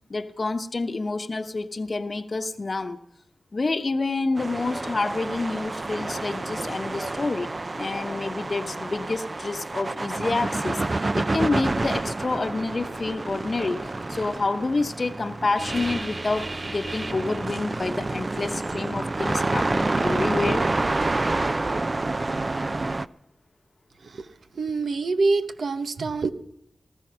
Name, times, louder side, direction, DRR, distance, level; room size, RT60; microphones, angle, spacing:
voice 1, 0.1-3.0 3.5-7.5 7.8-13.8 14.1-20.7, left 3 dB, 50° left, 8 dB, 1.0 m, -28 dB
sound 1, 4.3-23.1, right 2 dB, 40° right, 0.6 m, -28 dB
voice 2, 24.5-26.3, right 3 dB, 85° right, 10 dB, 1.0 m, -25 dB
19.0 x 13.0 x 5.7 m, 0.78 s
cardioid pair, 55°, 0 cm